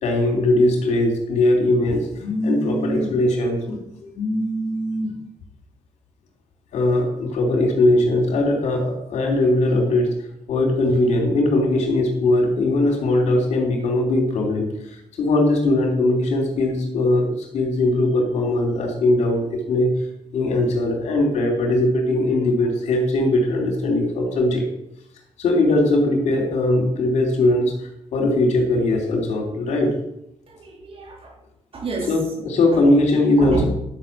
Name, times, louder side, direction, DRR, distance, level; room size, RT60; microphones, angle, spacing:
voice 1, 0.0-5.1 6.7-10.1 10.5-14.7 15.2-17.3 17.5-19.9 20.3-24.6 25.4-27.7 28.1-29.9 32.1-33.6, left 2 dB, 85° left, 1 dB, 3.5 m, -20 dB
voice 2, 30.5-31.4 31.7-32.3 32.8-33.0 33.4-33.6, right 4 dB, 55° right, 0 dB, 4.0 m, -30 dB
12.0 x 6.3 x 7.3 m, 0.80 s
cardioid pair, 80°, 12 cm